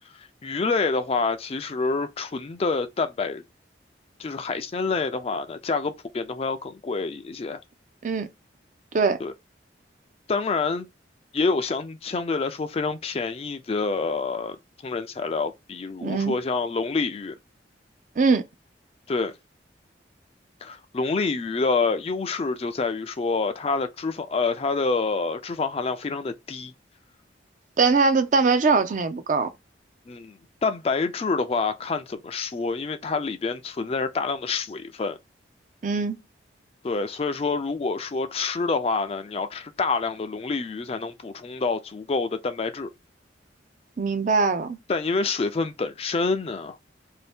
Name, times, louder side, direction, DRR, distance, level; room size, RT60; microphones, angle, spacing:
voice 1, 0.1-3.4 4.2-7.6 9.2-9.3 10.3-10.9 11.3-14.6 14.8-17.4 19.1-19.3 20.6-26.7 30.1-35.2 36.8-42.9 44.9-46.8, left 4 dB, 35° left, 0.3 m, -27 dB
voice 2, 16.0-16.4 18.2-18.4 27.8-29.5 35.8-36.2 44.0-44.8, right 4 dB, 45° right, 0.4 m, -21 dB
2.7 x 2.6 x 3.4 m
head